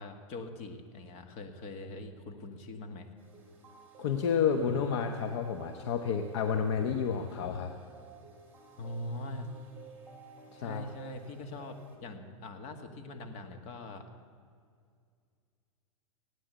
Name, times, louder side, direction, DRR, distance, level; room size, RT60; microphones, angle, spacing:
voice 1, 0.0-3.1 8.8-9.5 10.6-14.1, left 2 dB, 40° left, 6 dB, 1.9 m, -42 dB
sound 1, 3.2-12.0, right 4 dB, 10° right, 3.9 m, -53 dB
voice 2, 4.0-7.7 10.5-10.8, left 6 dB, 55° left, 6 dB, 1.1 m, -30 dB
18.0 x 9.5 x 8.2 m, 2.2 s
hypercardioid pair, 120°, 17 cm